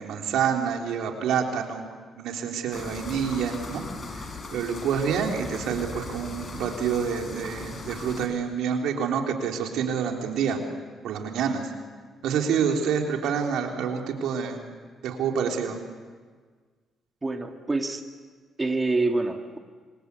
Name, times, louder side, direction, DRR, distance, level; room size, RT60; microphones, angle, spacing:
voice 1, 0.0-1.9 2.2-3.8 4.1-4.3 4.5-10.6 11.0-11.7 12.2-14.6 15.0-15.8, right 7 dB, 85° right, 2 dB, 3.6 m, -27 dB
sound 1, 2.7-8.3, left 3 dB, 40° left, 5.5 m, -38 dB
voice 2, 17.2-18.0 18.6-19.6, right 3 dB, 20° right, 4 dB, 2.2 m, -26 dB
26.5 x 25.5 x 8.3 m, 1.5 s
cardioid pair, 90°, 0 cm